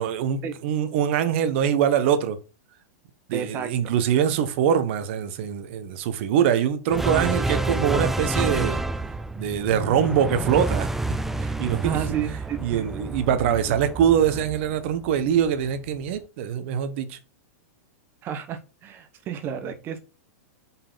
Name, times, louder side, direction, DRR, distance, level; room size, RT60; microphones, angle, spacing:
voice 1, 0.0-2.4 3.3-8.8 9.4-10.9 11.4-12.0 12.6-17.2, right 9 dB, 50° right, 1.2 m, -23 dB
voice 2, 3.3-3.9 11.8-12.6 18.2-20.0, right 9 dB, 25° right, 1.1 m, -31 dB
sound 1, 6.9-15.5, right 2 dB, 5° right, 0.4 m, -28 dB
5.6 x 4.7 x 5.6 m
hypercardioid pair, 145°, 8 cm